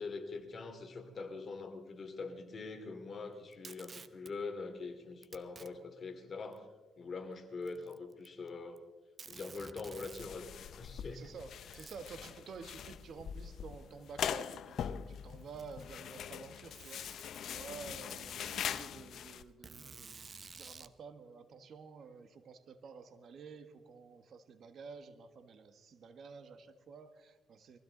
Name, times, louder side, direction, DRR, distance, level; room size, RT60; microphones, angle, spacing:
voice 1, 0.0-6.7 7.0-8.8 9.3-11.2 18.1-18.2, left 4 dB, 45° left, 5 dB, 2.5 m, -43 dB
Packing tape duct tape, 3.5-4.3 5.2-5.7 6.5-6.6 7.6-8.5 8.8-8.9 9.2-10.3 11.7-12.2 13.4-13.5 14.4-14.5 15.3-16.0 16.7-17.4 18.1-18.8 19.6-20.9, right 4 dB, 35° right, 0.9 m, -52 dB
sound 1, 10.2-19.4, left 9 dB, 65° left, 0.6 m, -42 dB
voice 2, 11.1-27.8, right 5 dB, 60° right, 10 dB, 1.5 m, -51 dB
22.5 x 15.5 x 3.9 m, 1.3 s
cardioid pair, 90°, 0 cm